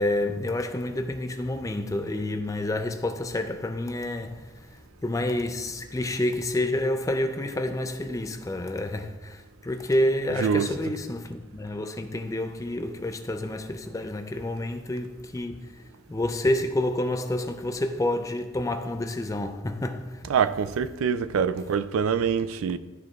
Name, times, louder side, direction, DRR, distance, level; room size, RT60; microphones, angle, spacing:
voice 1, 0.0-4.5 5.0-15.8 16.1-20.3, left 1 dB, 15° left, 0.4 m, -29 dB
voice 2, 20.3-22.8, right 7 dB, 85° right, 0.3 m, -25 dB
12.5 x 4.5 x 2.3 m
head